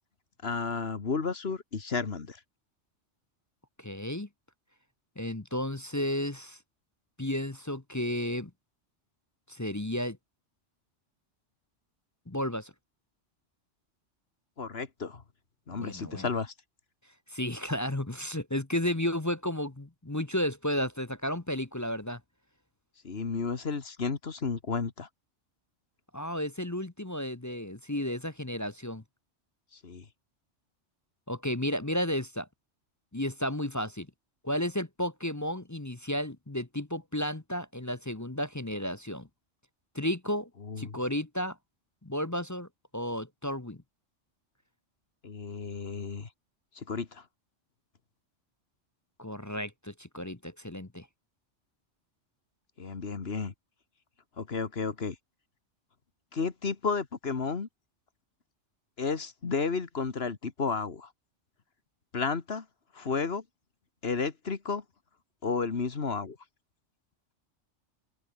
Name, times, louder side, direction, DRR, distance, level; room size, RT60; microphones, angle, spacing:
voice 1, 0.4-2.4 14.6-15.2 15.7-16.5 23.0-25.1 29.8-30.1 40.6-41.0 45.2-46.3 46.8-47.2 52.8-53.5 54.4-55.2 56.3-57.7 59.0-61.1 62.1-62.7 62.9-63.4 64.0-64.8 65.4-66.4, left 4 dB, 55° left, 1.8 m, -32 dB
voice 2, 3.8-4.3 5.2-6.6 7.2-8.5 9.5-10.2 12.3-12.7 15.8-16.3 17.3-22.2 26.1-29.0 31.3-32.5 33.1-34.1 34.4-39.3 39.9-40.5 40.8-41.6 42.0-42.7 42.9-43.8 49.2-51.1, left 1 dB, 15° left, 0.9 m, -33 dB
open air
omnidirectional pair, 1.3 m